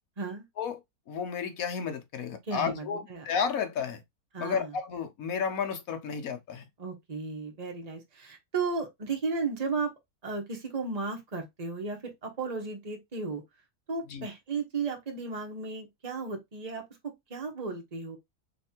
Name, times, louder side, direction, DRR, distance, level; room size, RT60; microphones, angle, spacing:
voice 1, 1.1-4.0 4.4-6.6 14.1-14.3, left 6 dB, 65° left, 1.2 m, -32 dB
voice 2, 2.5-3.3 4.3-4.7 6.8-9.9 10.2-13.4 13.9-18.2, right 4 dB, 25° right, 1.2 m, -34 dB
3.3 x 3.2 x 4.3 m
omnidirectional pair, 1.7 m